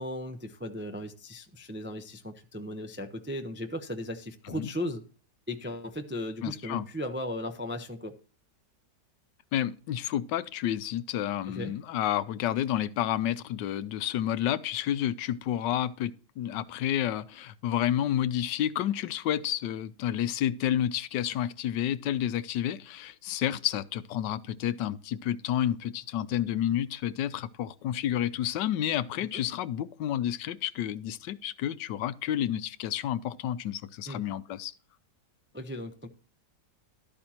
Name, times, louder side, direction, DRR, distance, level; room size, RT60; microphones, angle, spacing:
voice 1, 0.0-5.0 5.5-8.1 11.5-11.7 29.3-29.4 34.1-34.2 35.5-36.1, left 1 dB, 15° right, 0.4 m, -36 dB
voice 2, 6.4-6.9 9.5-34.7, left 11 dB, 85° left, 1.3 m, -30 dB
12.5 x 8.6 x 2.9 m
omnidirectional pair, 1.9 m